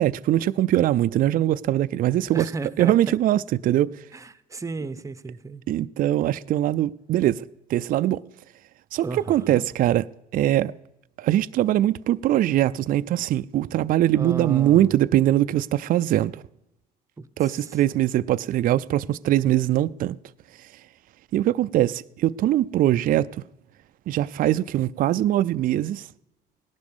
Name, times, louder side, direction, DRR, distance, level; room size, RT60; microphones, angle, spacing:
voice 1, 0.0-2.5 2.8-4.0 5.7-8.2 8.9-10.0 10.3-10.7 11.2-16.4 17.4-20.2 20.6-20.7 21.3-23.4 24.1-26.1, right 13 dB, 55° right, 0.4 m, -22 dB
voice 2, 2.3-3.2 4.1-5.6 9.0-9.6 14.1-14.9 17.2-17.6, right 3 dB, 20° right, 0.8 m, -34 dB
17.5 x 11.5 x 5.4 m
cardioid pair, 110°, 17 cm